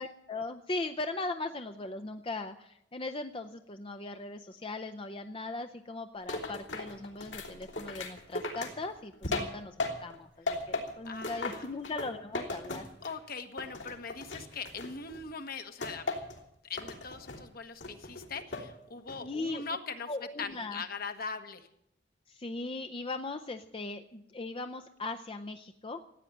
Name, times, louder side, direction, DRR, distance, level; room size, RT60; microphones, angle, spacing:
voice 1, 0.0-12.9 19.2-19.6 20.1-20.8 22.3-26.0, left 2 dB, 30° left, 7 dB, 0.6 m, -39 dB
sound 1, 6.3-10.2 10.5-13.3 13.6-15.2 15.8-16.4 16.8-17.4 17.8-18.7 19.1-19.5, left 3 dB, 70° left, 3.0 m, -37 dB
voice 2, 11.1-11.6 13.0-16.1 16.6-20.1 20.4-21.7, left 4 dB, 55° left, 7 dB, 1.3 m, -41 dB
15.0 x 9.2 x 9.7 m, 0.78 s
head